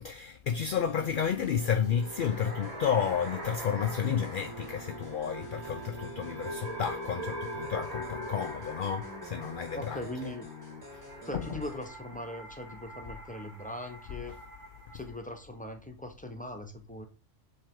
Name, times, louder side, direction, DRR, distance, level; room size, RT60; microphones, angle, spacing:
voice 1, 0.0-10.0 11.3-11.4, left 7 dB, 60° left, 0.6 m, -31 dB
sound 1, 0.7-11.9, right 1 dB, 15° right, 2.0 m, -47 dB
sound 2, 1.8-15.1, equal, 55° right, 2.3 m, -43 dB
voice 2, 9.7-10.5 11.2-14.4 14.9-17.1, left 1 dB, 10° left, 0.8 m, -40 dB
7.6 x 3.4 x 3.6 m
omnidirectional pair, 1.2 m